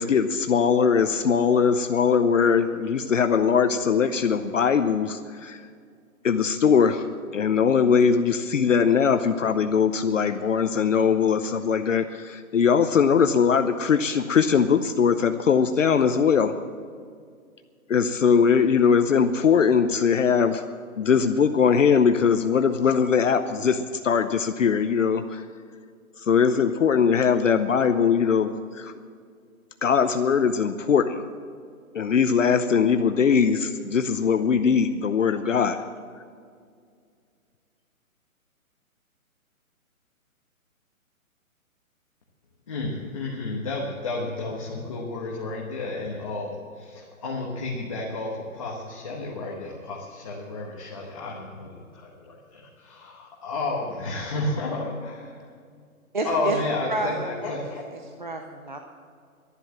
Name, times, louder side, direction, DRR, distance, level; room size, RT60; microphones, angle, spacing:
voice 1, 0.0-5.6 6.2-7.1 7.3-16.5 17.9-20.6 21.0-25.4 26.2-28.9 29.8-31.2 31.9-35.8, left 6 dB, 60° left, 8 dB, 0.8 m, -21 dB
voice 2, 42.7-51.8 52.2-55.3 56.2-57.8, left 2 dB, 25° left, -3 dB, 1.1 m, -31 dB
voice 3, 56.1-56.6 56.9-58.8, right 2 dB, 35° right, 4 dB, 0.7 m, -31 dB
12.0 x 11.5 x 7.5 m, 2.2 s
hypercardioid pair, 175°, 43 cm